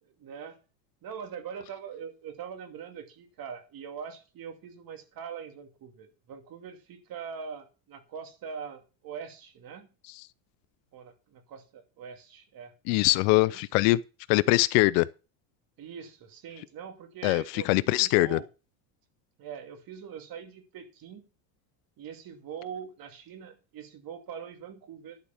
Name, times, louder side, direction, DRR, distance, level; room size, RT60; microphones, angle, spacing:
voice 1, 0.0-0.6 1.0-9.9 10.9-12.7 13.5-13.7 15.8-18.5 19.4-21.3 22.0-25.2, right 7 dB, 45° right, 2.6 m, -42 dB
voice 2, 12.9-14.0 14.3-15.1 17.2-18.4, left 21 dB, 60° left, 0.6 m, -22 dB
11.5 x 4.8 x 7.2 m
supercardioid pair, 120°, 50 cm